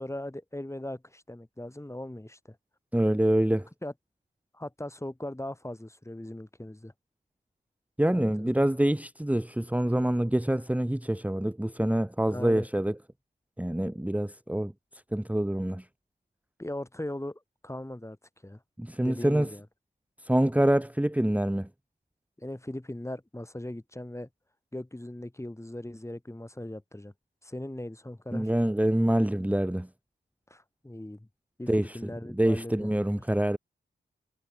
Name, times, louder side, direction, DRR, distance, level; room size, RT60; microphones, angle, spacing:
voice 1, 0.0-2.6 3.8-3.9 4.5-6.9 8.1-8.5 12.3-12.7 16.6-18.2 18.4-18.6 19.0-19.7 22.4-24.3 24.7-27.1 27.4-28.5 30.5-31.3 31.6-32.9, left 1 dB, 15° left, 6.4 m, -39 dB
voice 2, 2.9-3.7 8.0-13.0 13.6-14.7 15.1-15.8 18.8-19.5 20.2-21.7 28.3-29.9 31.7-33.6, right 1 dB, 5° right, 1.7 m, -26 dB
cardioid pair, 45°, 20 cm